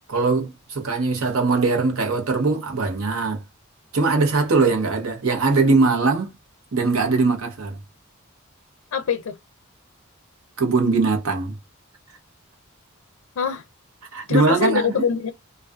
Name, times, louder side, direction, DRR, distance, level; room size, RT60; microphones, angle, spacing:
voice 1, 0.1-3.4 3.9-6.3 6.7-7.8 10.6-11.6 14.1-15.0, right 3 dB, 85° right, 0.9 m, -21 dB
voice 2, 8.9-9.4 13.4-13.7 14.3-15.3, left 7 dB, 80° left, 0.4 m, -24 dB
2.4 x 2.3 x 2.2 m
head